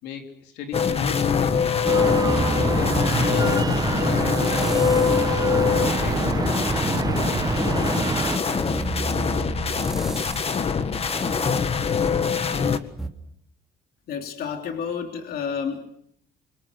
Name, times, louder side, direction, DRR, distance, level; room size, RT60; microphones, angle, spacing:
voice 1, 0.0-1.8 2.5-5.0 5.6-6.7, left 7 dB, 85° left, 4 dB, 3.6 m, -37 dB
sound 1, 0.7-12.8, left 6 dB, 35° left, 1.7 m, -23 dB
sound 2, 1.9-8.4, right 4 dB, 20° right, 1.2 m, -26 dB
sound 3, 2.3-3.7 4.3-5.4 5.8-12.5 13.0-13.1, right 3 dB, ahead, 2.9 m, -35 dB
voice 2, 14.1-15.9, left 6 dB, 65° left, 4 dB, 3.2 m, -30 dB
27.0 x 24.5 x 6.5 m, 0.70 s
cardioid pair, 110°, 17 cm